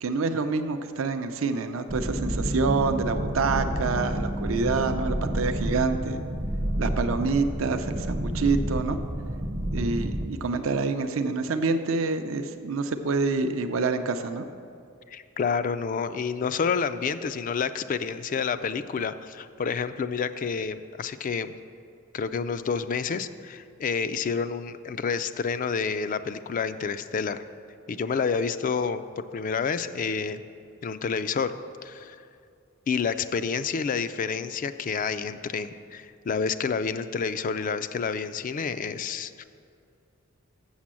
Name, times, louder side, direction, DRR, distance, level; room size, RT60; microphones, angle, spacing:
voice 1, 0.0-6.2 6.8-9.0 9.7-14.4, right 4 dB, 65° right, 8 dB, 0.5 m, -27 dB
sound 1, 1.9-10.3, right 1 dB, 20° right, 0.5 m, -29 dB
voice 2, 15.1-21.5 22.1-27.4 27.9-30.4 30.8-31.5 31.8-32.2 32.9-39.4, left 5 dB, 40° left, 12 dB, 0.3 m, -29 dB
7.2 x 6.7 x 7.5 m, 2.4 s
head